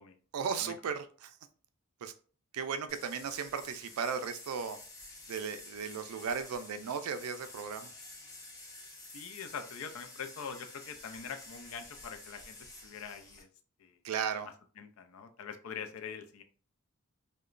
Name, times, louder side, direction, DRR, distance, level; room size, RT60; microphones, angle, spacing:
voice 1, 0.3-1.3 2.0-2.1 2.5-4.8 5.3-7.9 14.0-14.5, right 6 dB, 90° right, 10 dB, 0.4 m, -36 dB
sound 1, 2.9-13.4, left 2 dB, 15° left, 0.5 m, -50 dB
voice 2, 9.1-12.6 12.8-13.5 13.8-14.0 14.8-16.4, left 6 dB, 75° left, 7 dB, 0.4 m, -43 dB
2.8 x 2.2 x 2.4 m, 0.41 s
head